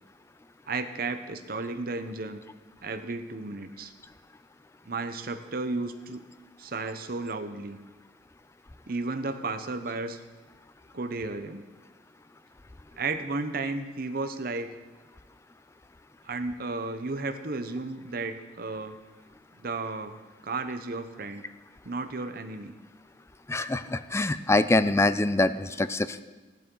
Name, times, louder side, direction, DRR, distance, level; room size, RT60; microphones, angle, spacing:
voice 1, 0.7-2.4 2.8-3.9 4.9-6.2 6.6-7.8 8.9-10.2 10.9-11.6 13.0-14.7 16.2-19.0 19.6-21.4 21.8-22.7, right 3 dB, 55° right, 8 dB, 0.8 m, -33 dB
voice 2, 23.5-26.2, left 2 dB, 15° left, 13 dB, 0.4 m, -24 dB
14.5 x 12.0 x 3.9 m, 1.2 s
head